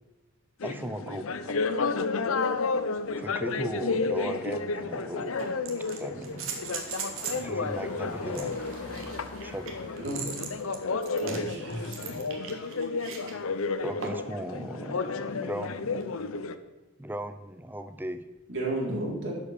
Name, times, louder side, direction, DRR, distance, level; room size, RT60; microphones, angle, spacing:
sound 1, 0.6-16.5, left 4 dB, 80° left, 0.7 m, -32 dB
voice 1, 0.6-1.6 3.2-5.5 6.0-6.6 7.3-8.6 9.4-9.8 13.8-16.1 17.0-18.2, right 1 dB, 10° right, 10 dB, 0.5 m, -37 dB
sound 2, 2.0-12.1, equal, 10° left, 3.1 m, -49 dB
sound 3, 4.3-4.4 5.4-7.5 8.3-13.3 14.0-14.4 16.0-16.1, right 6 dB, 75° right, 1.6 m, -39 dB
voice 2, 11.1-12.3 18.5-19.3, right 1 dB, 55° right, -4 dB, 3.8 m, -33 dB
11.5 x 5.3 x 6.5 m, 1.1 s
head